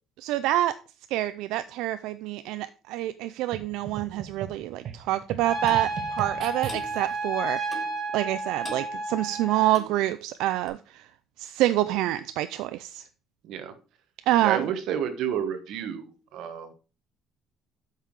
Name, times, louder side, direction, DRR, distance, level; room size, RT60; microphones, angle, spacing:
voice 1, 0.2-0.7 1.1-7.9 8.1-11.1 11.4-13.0 14.3-14.7, right 15 dB, 90° right, 0.4 m, -27 dB
sound 1, 3.5-7.2, right 7 dB, 45° right, 1.0 m, -39 dB
Trumpet, 5.4-9.8, right 2 dB, 15° right, 2.7 m, -32 dB
Clock, 5.7-5.9 6.7-6.9 7.7-8.0 8.6-8.9 9.7-10.0 10.7-10.8, left 3 dB, 25° left, 1.5 m, -41 dB
voice 2, 13.4-13.7 14.4-16.7, right 8 dB, 65° right, 1.4 m, -31 dB
8.3 x 5.7 x 4.7 m
cardioid pair, 160°, 0 cm